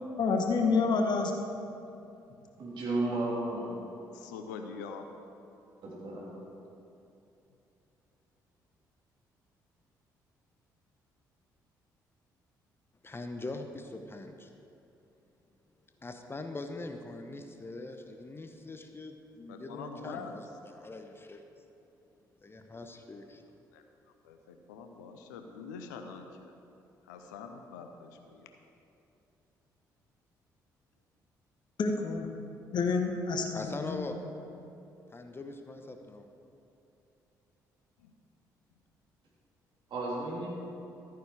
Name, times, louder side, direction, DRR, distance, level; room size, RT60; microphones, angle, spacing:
voice 1, 0.0-1.3 31.8-32.3 32.7-34.1, left 4 dB, 45° left, 3 dB, 1.3 m, -28 dB
voice 2, 2.6-3.8 5.8-6.3 39.9-40.5, right 2 dB, 55° right, -4 dB, 3.2 m, -33 dB
voice 3, 4.1-5.1 19.5-20.4 23.7-23.8 24.2-26.5 27.1-28.5 38.0-38.1, left 5 dB, 75° left, 5 dB, 0.7 m, -44 dB
voice 4, 13.0-14.5 16.0-21.4 22.4-23.4 33.5-34.2 35.1-36.2, left 2 dB, 25° left, 5 dB, 0.9 m, -42 dB
13.5 x 9.2 x 4.8 m, 2.8 s
figure-of-eight pair, 45°, 10 cm